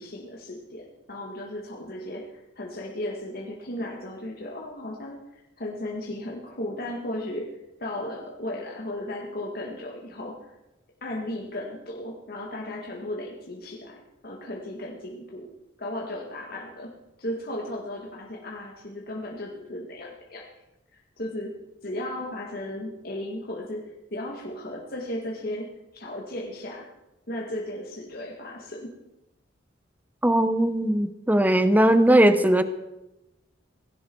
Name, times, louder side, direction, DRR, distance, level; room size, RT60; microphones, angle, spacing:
voice 1, 0.0-5.2 5.6-10.5 11.0-15.5 15.8-20.5 21.2-26.9 27.3-29.0, left 1 dB, 55° left, -1 dB, 1.9 m, -35 dB
voice 2, 30.2-32.6, right 1 dB, 10° right, 11 dB, 0.8 m, -19 dB
17.5 x 16.0 x 4.6 m, 0.92 s
head